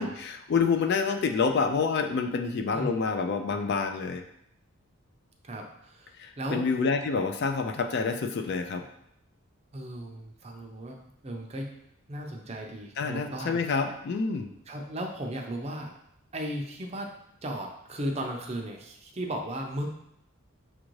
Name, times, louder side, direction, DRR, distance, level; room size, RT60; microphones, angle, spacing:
voice 1, 0.0-4.2 6.2-8.8 13.0-14.5, left 5 dB, 50° left, 6 dB, 0.3 m, -28 dB
voice 2, 5.4-6.7 9.7-11.0 11.2-11.7 12.1-13.6 14.7-15.9 16.3-17.1 17.4-19.9, right 1 dB, 30° right, 2 dB, 0.5 m, -36 dB
6.0 x 2.5 x 3.1 m, 0.76 s
head